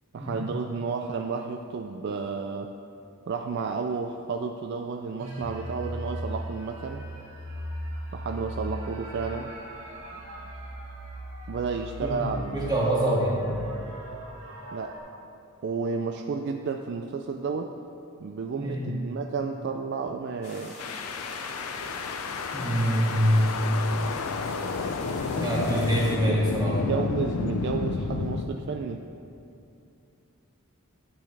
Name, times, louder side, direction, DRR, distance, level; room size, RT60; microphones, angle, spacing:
voice 1, 0.1-2.7 3.3-7.0 8.1-9.5 11.5-13.2 14.7-14.9 15.6-17.7 18.2-21.4 26.7-29.1, right 5 dB, 50° right, 4 dB, 0.3 m, -32 dB
sound 1, 5.2-15.0, equal, 85° right, 1.7 m, -38 dB
voice 2, 12.5-13.4 18.6-18.9 22.5-23.5 25.3-26.8, equal, 20° right, -6 dB, 1.9 m, -25 dB
sound 2, 20.4-26.2, left 1 dB, 35° left, 1.9 m, -43 dB
sound 3, 20.8-28.5, left 4 dB, 80° left, 0.5 m, -31 dB
10.0 x 8.5 x 3.3 m, 2.6 s
head